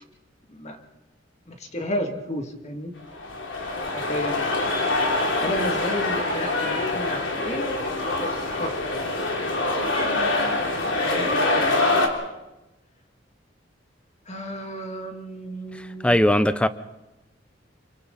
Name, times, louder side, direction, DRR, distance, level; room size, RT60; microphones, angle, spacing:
voice 1, 1.5-2.9 3.9-4.6 5.4-7.8 8.2-8.8 11.0-12.0 14.3-16.1, equal, 35° left, 4 dB, 2.6 m, -32 dB
sound 1, 3.1-12.1, left 2 dB, 85° left, 3.3 m, -25 dB
voice 2, 16.0-16.7, left 1 dB, 5° left, 12 dB, 0.8 m, -18 dB
28.5 x 24.0 x 4.2 m, 0.97 s
head